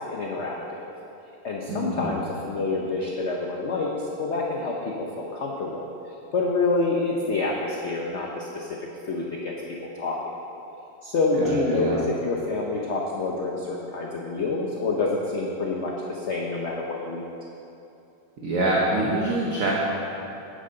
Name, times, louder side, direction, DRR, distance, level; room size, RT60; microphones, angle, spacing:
voice 1, 0.1-0.8 1.4-5.8 6.3-8.8 9.1-9.5 9.9-10.2 11.0-17.2, left 3 dB, 60° left, -2 dB, 0.7 m, -27 dB
voice 2, 1.7-2.1 11.4-12.0 18.4-19.7, right 2 dB, 50° right, -4 dB, 1.2 m, -25 dB
10.0 x 9.1 x 3.9 m, 2.8 s
omnidirectional pair, 2.2 m